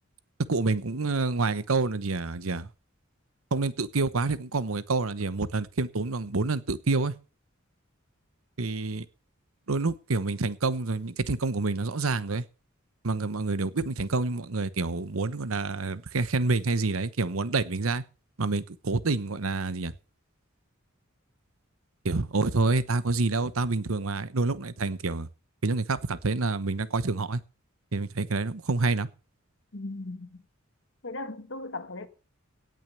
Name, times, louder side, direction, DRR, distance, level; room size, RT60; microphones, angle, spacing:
voice 1, 0.5-2.7 3.5-7.1 8.6-9.1 9.7-12.4 13.0-18.0 18.4-19.9 22.0-25.3 25.6-27.4 27.9-29.1, right 3 dB, 90° right, 1.0 m, -27 dB
voice 2, 29.7-30.4 31.0-32.1, left 2 dB, 60° left, 1.5 m, -37 dB
17.5 x 6.4 x 6.9 m
head